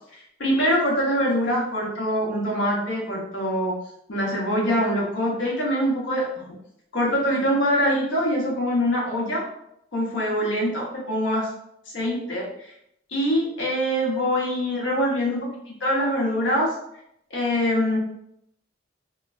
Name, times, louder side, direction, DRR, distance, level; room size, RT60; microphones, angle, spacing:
voice 1, 0.4-3.7 4.1-6.2 6.9-9.4 9.9-11.5 11.9-12.7 13.1-16.7 17.3-18.0, equal, 75° left, -4 dB, 0.9 m, -24 dB
3.1 x 2.2 x 2.4 m, 0.76 s
head